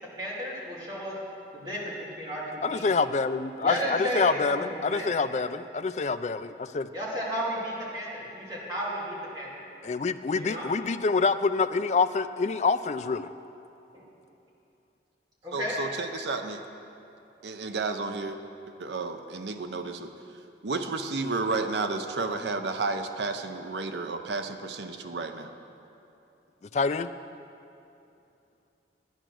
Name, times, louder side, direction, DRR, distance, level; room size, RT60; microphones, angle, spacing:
voice 1, 0.2-1.1 1.5-2.9 3.6-5.2 6.9-9.6 10.4-10.7 13.9-14.0 15.4-15.7, equal, 25° right, -6 dB, 2.7 m, -33 dB
voice 2, 2.6-6.9 9.8-13.3 26.7-27.1, left 4 dB, 40° left, 12 dB, 0.3 m, -26 dB
voice 3, 15.5-16.6 17.4-18.4 18.8-20.1 20.6-25.5, right 3 dB, 75° right, 7 dB, 0.7 m, -32 dB
10.5 x 10.0 x 6.2 m, 2.8 s
head